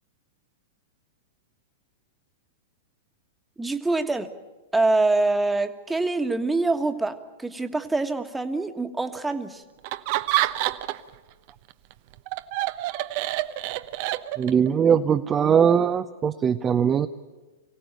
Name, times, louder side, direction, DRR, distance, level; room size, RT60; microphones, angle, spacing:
voice 1, 3.6-4.3 4.7-9.6, right 3 dB, 10° right, 7 dB, 1.6 m, -25 dB
Laughter, 9.8-11.1 11.5-14.7, right 16 dB, 50° right, 0.9 m, -27 dB
voice 2, 14.4-17.1, right 7 dB, 25° right, 7 dB, 0.7 m, -21 dB
24.0 x 17.0 x 9.2 m, 1.3 s
hypercardioid pair, 105°, 0 cm